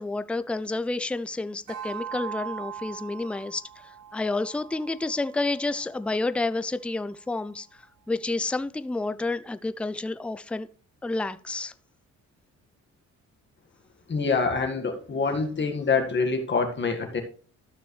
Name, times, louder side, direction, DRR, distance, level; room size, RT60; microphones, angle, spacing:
voice 1, 0.0-7.7 8.1-10.7 11.0-11.7, left 2 dB, 5° left, 13 dB, 0.4 m, -30 dB
sound 1, 1.7-6.3, right 9 dB, 85° right, 2.0 m, -40 dB
voice 2, 14.1-17.2, left 4 dB, 40° left, 4 dB, 1.8 m, -26 dB
13.0 x 6.0 x 3.2 m, 0.42 s
cardioid pair, 90°, 30 cm